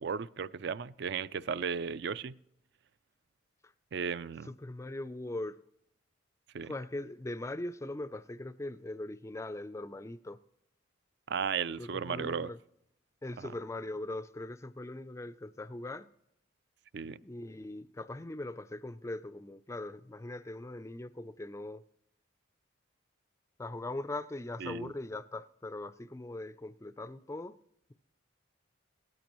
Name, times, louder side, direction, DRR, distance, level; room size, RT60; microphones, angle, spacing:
voice 1, 0.0-2.3 3.9-4.5 6.5-6.7 11.3-12.5 13.4-13.5 16.9-17.2 24.6-24.9, right 6 dB, 55° right, 0.4 m, -35 dB
voice 2, 4.5-5.6 6.6-10.4 11.8-12.6 13.2-16.1 17.2-21.8 23.6-27.6, left 2 dB, 15° left, 0.3 m, -40 dB
17.0 x 13.5 x 3.0 m
head